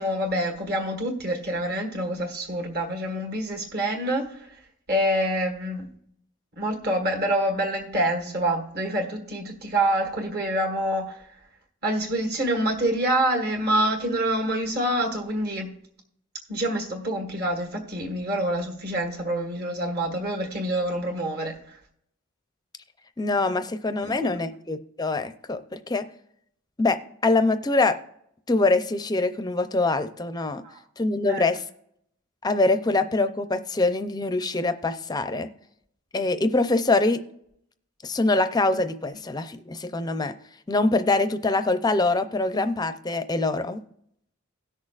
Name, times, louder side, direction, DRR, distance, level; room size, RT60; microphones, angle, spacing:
voice 1, 0.0-4.6 4.9-5.9 6.6-11.3 11.8-15.7 16.5-21.8 24.0-24.4 30.6-30.8 31.3-31.6 39.1-39.2, right 1 dB, 45° right, 1 dB, 1.6 m, -26 dB
voice 2, 23.2-26.0 26.8-28.0 28.5-30.6 31.0-31.6 32.4-35.5 36.1-37.2 38.0-40.3 40.7-43.8, left 2 dB, 20° left, 10 dB, 0.5 m, -24 dB
17.5 x 6.4 x 2.4 m, 0.72 s
head